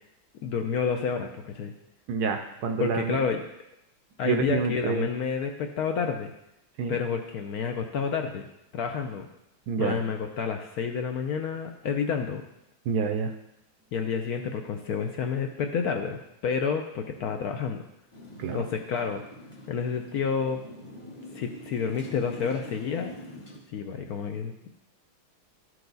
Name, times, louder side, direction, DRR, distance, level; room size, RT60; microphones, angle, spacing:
voice 1, 0.4-1.7 2.8-3.4 4.2-6.3 6.9-8.4 8.7-9.3 9.8-12.4 13.9-17.8 18.5-19.2 19.7-20.6 21.3-23.1 23.7-24.5, left 6 dB, 70° left, 4 dB, 0.9 m, -29 dB
voice 2, 2.1-3.2 4.2-5.1 6.8-7.0 9.7-10.0 12.9-13.3 18.4-18.6, right 5 dB, 70° right, 6 dB, 1.0 m, -28 dB
Motorcycle, 18.1-23.6, left 1 dB, 25° left, 0.7 m, -44 dB
12.0 x 4.7 x 3.9 m, 0.86 s
omnidirectional pair, 2.0 m